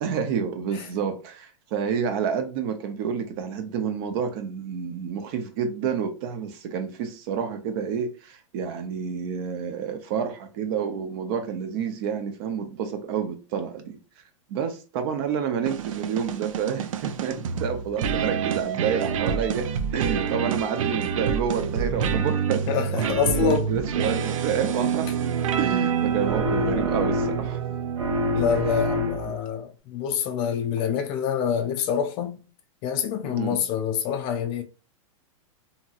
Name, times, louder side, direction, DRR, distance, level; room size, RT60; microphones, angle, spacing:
voice 1, 0.0-14.0 14.5-25.1 25.6-27.6 29.3-29.4 33.3-33.6, right 7 dB, 45° right, 0.6 m, -29 dB
sound 1, 15.7-29.1, right 7 dB, 85° right, 0.4 m, -27 dB
voice 2, 22.7-23.7 28.3-32.4 32.8-34.6, left 7 dB, 35° left, 0.4 m, -26 dB
sound 2, 26.2-27.7 28.0-29.5, left 2 dB, 70° right, 1.0 m, -27 dB
2.9 x 2.7 x 2.4 m
supercardioid pair, 145°, 17 cm